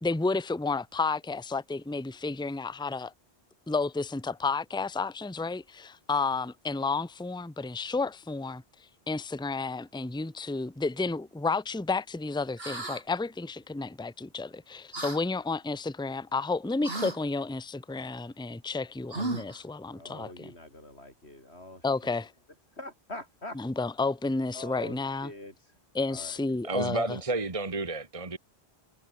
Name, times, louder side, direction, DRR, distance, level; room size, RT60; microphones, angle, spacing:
voice 1, 0.0-3.1 3.7-20.5 21.8-22.3 23.6-25.3 25.9-27.2, left 3 dB, 5° left, 0.8 m, -31 dB
sound 1, 12.6-13.0 14.9-15.2 16.8-17.2 19.1-19.6, right 2 dB, 65° right, 3.7 m, -34 dB
voice 2, 19.9-22.2 22.7-23.6 24.5-25.8 26.1-26.4, left 1 dB, 85° left, 7.2 m, -44 dB
voice 3, 26.6-28.4, right 2 dB, 30° right, 1.8 m, -31 dB
omnidirectional pair, 1.1 m